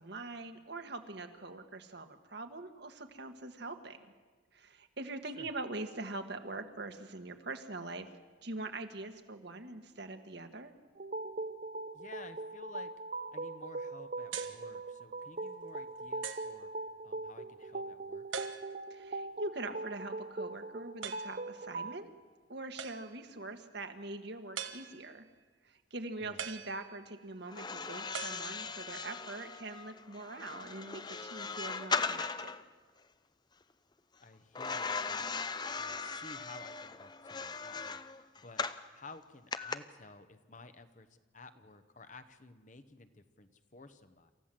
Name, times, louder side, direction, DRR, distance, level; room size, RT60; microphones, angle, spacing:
voice 1, 0.0-4.1 4.5-8.1 8.4-10.7 18.9-22.1 22.5-25.2 25.6-32.6, right 2 dB, 60° right, 7 dB, 1.5 m, -43 dB
sound 1, 11.0-22.0, right 2 dB, 40° right, 0.7 m, -41 dB
voice 2, 11.9-12.9 13.3-16.7 17.0-18.2 26.2-26.5 34.2-35.3 35.8-38.0 38.4-38.6 38.9-44.3, left 3 dB, 40° left, 10 dB, 1.1 m, -53 dB
sound 2, 14.3-14.7 15.4-15.5 16.2-16.6 18.3-19.0 21.0-21.4 22.8-23.3 24.6-25.3 26.4-27.3 28.1-29.0, right 7 dB, 85° right, 1.3 m, -43 dB
sound 3, 27.5-32.6 34.6-38.9 39.5-39.8, left 5 dB, 20° left, 0.6 m, -38 dB
27.5 x 14.5 x 7.6 m, 1.4 s
head